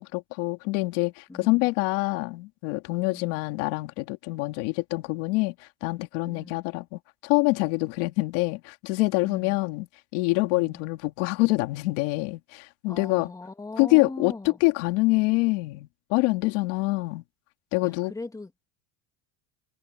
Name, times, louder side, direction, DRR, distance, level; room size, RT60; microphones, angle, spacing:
voice 1, 0.0-9.9 10.1-13.3 13.8-17.2 17.7-18.1, left 24 dB, 75° left, 2.6 m, -26 dB
voice 2, 1.3-1.7 3.0-3.4 6.2-6.6 9.2-9.6 10.5-10.8 12.9-14.6 17.8-18.5, left 2 dB, 10° left, 2.3 m, -40 dB
supercardioid pair, 130°, 36 cm